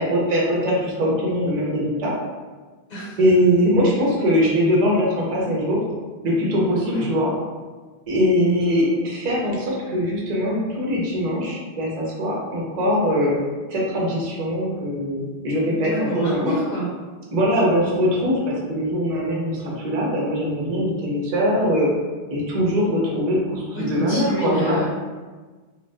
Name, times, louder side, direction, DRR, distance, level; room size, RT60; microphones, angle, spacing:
voice 1, 0.0-2.1 3.2-5.8 6.2-7.3 8.1-13.4 13.7-16.5 17.3-21.9 22.3-24.8, equal, 45° right, -3 dB, 0.7 m, -21 dB
voice 2, 15.8-16.9 23.7-24.8, right 1 dB, 60° left, -7 dB, 1.0 m, -27 dB
2.5 x 2.3 x 3.3 m, 1.4 s
omnidirectional pair, 1.0 m